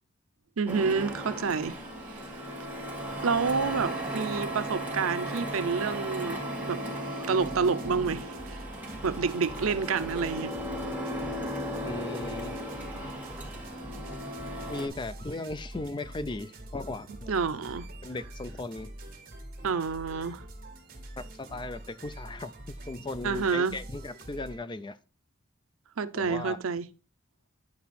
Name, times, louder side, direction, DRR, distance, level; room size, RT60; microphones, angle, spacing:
voice 1, 0.6-1.8 2.1-2.2 3.2-6.4 6.7-6.8 7.3-8.6 9.0-10.5 17.3-17.9 19.6-20.4 23.2-23.8 26.0-26.9, right 5 dB, 85° right, 0.6 m, -28 dB
Printer, 0.7-14.9, equal, 10° right, 1.9 m, -36 dB
sound 1, 7.4-24.6, right 1 dB, 45° right, 1.7 m, -45 dB
voice 2, 11.8-12.6 14.7-17.3 18.0-18.9 21.2-22.5 22.8-25.0 26.2-26.6, left 2 dB, 20° left, 0.4 m, -37 dB
9.8 x 4.7 x 4.2 m
head